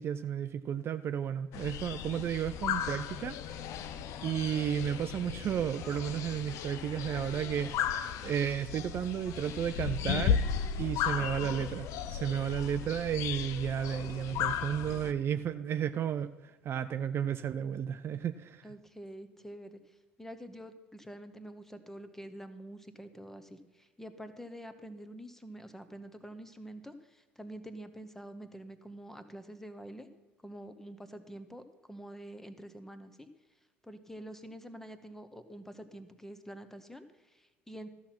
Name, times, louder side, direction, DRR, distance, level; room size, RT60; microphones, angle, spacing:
voice 1, 0.0-3.4 4.2-10.4 10.8-18.6, right 9 dB, 40° right, 11 dB, 0.4 m, -33 dB
sound 1, 1.5-15.1, left 8 dB, 60° left, 0.6 m, -35 dB
voice 2, 11.2-11.7 18.6-30.1 30.4-33.3 33.8-37.9, right 1 dB, 5° left, 10 dB, 1.0 m, -47 dB
13.0 x 5.9 x 5.9 m, 1.1 s
hypercardioid pair, 60°, 6 cm